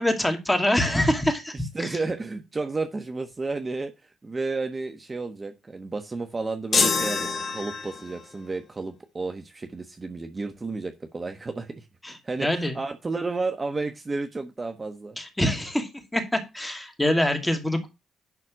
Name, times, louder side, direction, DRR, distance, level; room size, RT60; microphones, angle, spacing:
voice 1, 0.0-2.0 12.0-12.8 15.2-17.9, left 1 dB, 5° left, 5 dB, 2.5 m, -25 dB
voice 2, 1.7-3.9 4.2-15.2, right 3 dB, 25° right, 7 dB, 1.2 m, -32 dB
sound 1, 6.7-8.2, left 4 dB, 35° left, 2.8 m, -25 dB
11.0 x 4.3 x 6.2 m, 0.25 s
cardioid pair, 90°, 0 cm